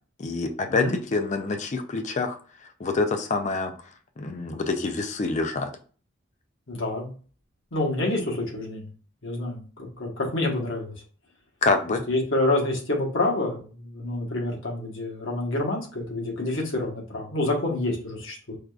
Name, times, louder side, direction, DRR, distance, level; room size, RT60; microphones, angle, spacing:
voice 1, 0.2-3.7 4.2-5.7 11.6-12.0, left 3 dB, 35° left, 6 dB, 0.4 m, -26 dB
voice 2, 6.7-7.1 7.7-8.9 9.2-10.9 12.1-18.6, left 2 dB, 75° left, -1 dB, 1.2 m, -27 dB
4.8 x 2.4 x 2.3 m, 0.40 s
head